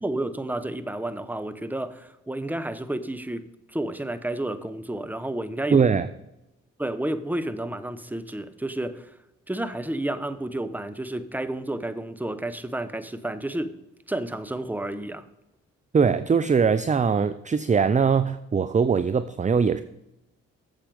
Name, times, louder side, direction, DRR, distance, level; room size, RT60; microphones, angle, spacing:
voice 1, 0.0-5.8 6.8-9.1 9.5-13.8 14.1-15.3, right 1 dB, 5° right, 0.9 m, -31 dB
voice 2, 5.7-6.1 15.9-19.8, right 6 dB, 25° right, 0.5 m, -21 dB
8.7 x 7.4 x 5.3 m
hypercardioid pair, 45°, 33 cm